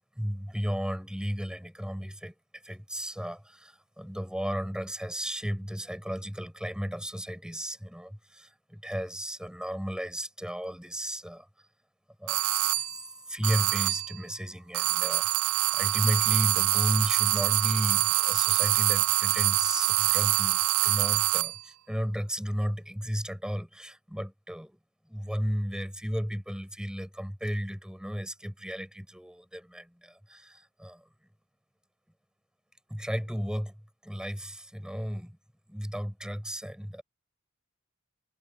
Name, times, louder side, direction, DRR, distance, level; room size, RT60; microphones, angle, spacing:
voice 1, 0.2-11.5 12.2-24.8 25.1-31.1 32.9-35.4 35.7-37.0, equal, 5° right, 5.3 m, -34 dB
sound 1, 12.3-13.0 13.4-14.2 14.7-21.6, right 17 dB, 80° right, 0.4 m, -25 dB
head